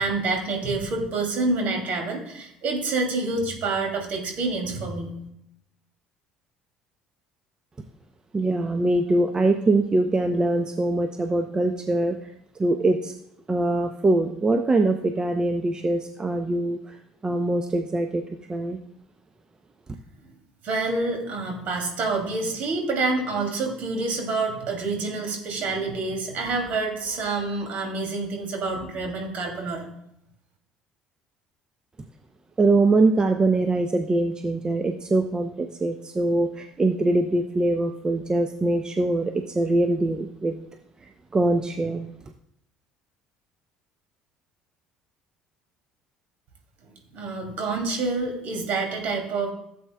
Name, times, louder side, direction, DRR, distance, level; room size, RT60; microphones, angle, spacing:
voice 1, 0.0-5.1 20.6-29.9 47.1-49.5, right 3 dB, 50° right, 2 dB, 2.8 m, -27 dB
voice 2, 8.3-12.2 12.5-13.1 13.5-17.0 17.2-18.2 18.5-18.8 32.6-40.6 41.3-42.1, right 2 dB, 20° right, 6 dB, 0.7 m, -23 dB
16.0 x 7.8 x 2.3 m, 0.77 s
figure-of-eight pair, 55°, 4 cm